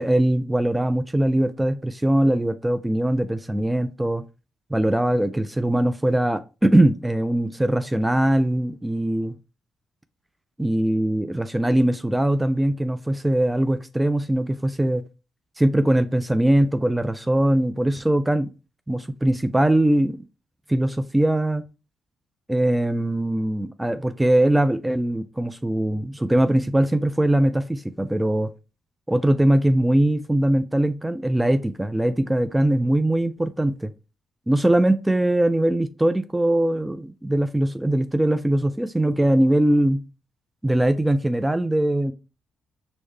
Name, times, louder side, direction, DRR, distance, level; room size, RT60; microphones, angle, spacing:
voice 1, 0.0-4.2 4.7-9.4 10.6-15.0 15.6-18.5 18.9-20.2 20.7-21.6 22.5-28.5 29.1-33.9 34.5-40.0 40.6-42.1, right 1 dB, 10° right, 0.3 m, -21 dB
4.7 x 2.1 x 3.2 m
supercardioid pair, 50°, 0 cm